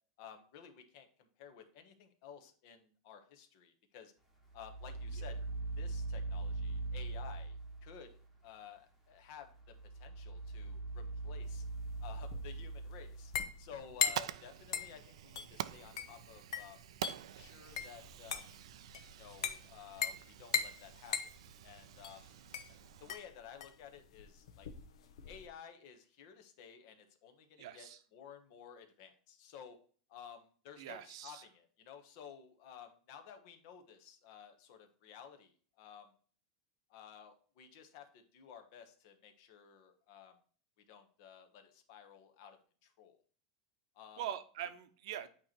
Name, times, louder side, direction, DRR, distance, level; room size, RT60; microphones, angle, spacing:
voice 1, 0.2-4.1 4.5-5.4 5.8-9.5 9.9-11.6 12.0-13.3 13.6-18.5 19.1-21.2 21.6-22.2 22.7-24.7 25.3-29.8 30.1-36.1 36.9-40.4 40.9-43.2 43.9-44.2, left 8 dB, 45° left, 6 dB, 1.1 m, -54 dB
sound 1, 4.5-8.2 9.5-13.9, right 3 dB, ahead, 1.2 m, -41 dB
sound 2, 11.5-25.5, left 7 dB, 85° left, 0.9 m, -40 dB
Fire, 13.7-23.1, right 11 dB, 85° right, 0.4 m, -47 dB
voice 2, 27.6-28.0 30.8-31.4 44.2-45.3, right 10 dB, 60° right, 10 dB, 0.8 m, -43 dB
8.6 x 3.1 x 4.3 m, 0.44 s
supercardioid pair, 165°, 3 cm